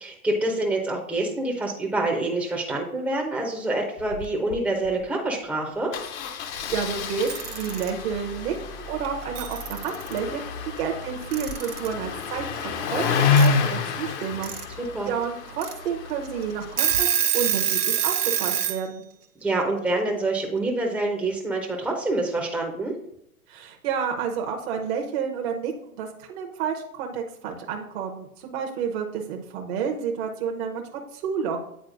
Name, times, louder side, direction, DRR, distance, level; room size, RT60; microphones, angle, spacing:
voice 1, 0.0-5.9 14.8-15.1 19.4-22.9, right 2 dB, 5° right, -2 dB, 0.6 m, -26 dB
Engine starting, 4.0-4.3 4.5-4.6 4.9-5.0 5.9-17.0, left 5 dB, 50° left, 0.8 m, -29 dB
voice 2, 6.5-10.4 10.8-19.0 23.5-31.6, right 6 dB, 45° right, 2 dB, 0.8 m, -30 dB
Alarm / Clock, 7.1-7.9 9.0-9.1 9.4-10.2 11.3-11.9 13.4-13.5 14.2-14.6 15.1-15.2 15.6-15.7 16.3-16.4 16.6-18.8, right 9 dB, 90° right, 0.9 m, -25 dB
9.1 x 4.2 x 2.5 m, 0.75 s
hypercardioid pair, 115°, 44 cm